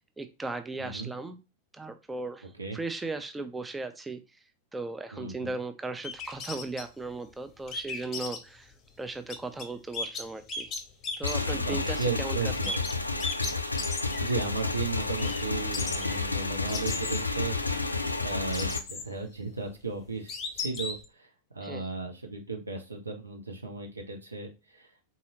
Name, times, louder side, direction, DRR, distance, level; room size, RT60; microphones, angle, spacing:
voice 1, 0.2-1.4 1.7-4.4 4.7-10.7 11.2-12.7 21.6-21.9, right 3 dB, 10° right, 8 dB, 0.4 m, -37 dB
voice 2, 0.8-1.1 2.6-2.8 5.1-5.5 11.5-12.7 14.2-17.6 18.2-21.3 21.5-24.9, right 4 dB, 80° right, 4 dB, 0.7 m, -35 dB
sound 1, 6.0-6.8 7.7-8.4 9.3-9.7 9.9-12.0 12.6-14.4 14.7-14.8 15.2-15.4 15.7-18.0 18.5-19.2 19.7-19.8 20.3-21.1, left 3 dB, 30° left, 0.7 m, -36 dB
Motorcycle / Engine, 11.2-18.8, left 3 dB, 85° left, 0.3 m, -31 dB
3.9 x 2.7 x 2.7 m, 0.28 s
figure-of-eight pair, 90°, 0 cm